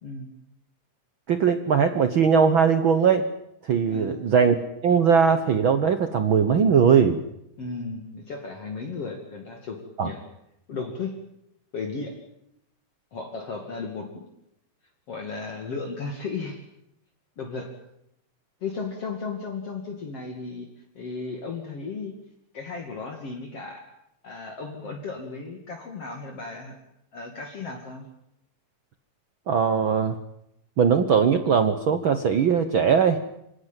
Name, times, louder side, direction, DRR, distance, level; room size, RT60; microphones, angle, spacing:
voice 1, 1.3-3.3 3.7-4.6 4.8-7.2 10.0-10.1 29.5-30.2 30.8-33.2, right 6 dB, 75° right, 10 dB, 1.1 m, -20 dB
voice 2, 3.9-4.3 7.6-10.2 10.7-11.1 11.7-12.2 13.1-14.2 15.1-16.6 17.4-17.7 18.6-20.7 20.9-22.1 22.5-23.9 24.2-26.8 27.1-28.0, left 4 dB, 45° left, 2 dB, 3.1 m, -35 dB
26.0 x 18.0 x 9.2 m, 0.80 s
omnidirectional pair, 4.0 m